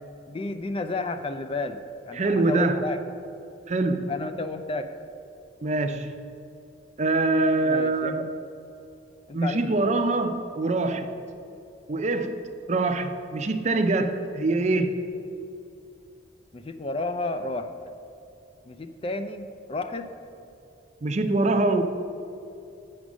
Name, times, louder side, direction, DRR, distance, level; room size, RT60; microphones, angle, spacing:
voice 1, 0.3-1.8 2.1-3.0 4.1-4.9 7.6-8.3 9.3-9.9 16.5-17.9 18.7-20.1, left 2 dB, 30° left, 9 dB, 0.4 m, -32 dB
voice 2, 2.1-2.8 3.7-4.1 5.6-6.2 7.0-8.3 9.3-11.2 11.9-15.0 21.0-21.8, right 2 dB, 40° right, 8 dB, 0.5 m, -24 dB
8.5 x 6.2 x 6.2 m, 2.6 s
head